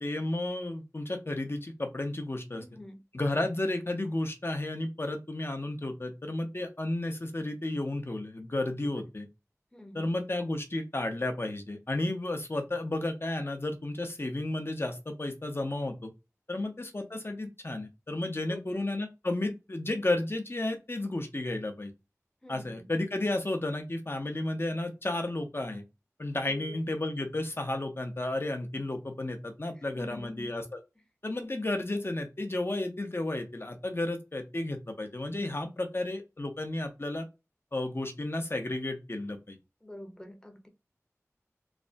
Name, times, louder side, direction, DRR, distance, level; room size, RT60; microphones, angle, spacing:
voice 1, 0.0-2.6 3.1-9.3 9.9-16.1 16.5-21.9 22.5-25.8 26.2-30.8 31.2-37.2 37.7-39.6, left 2 dB, 45° left, 0.7 m, -32 dB
voice 2, 2.5-3.0 8.8-9.0 9.7-10.1 16.5-16.6 18.5-18.8 22.4-22.9 26.4-26.8 29.9-30.5 39.8-40.7, left 1 dB, 10° left, 0.7 m, -46 dB
3.2 x 2.1 x 2.5 m
wide cardioid pair, 50°, 6 cm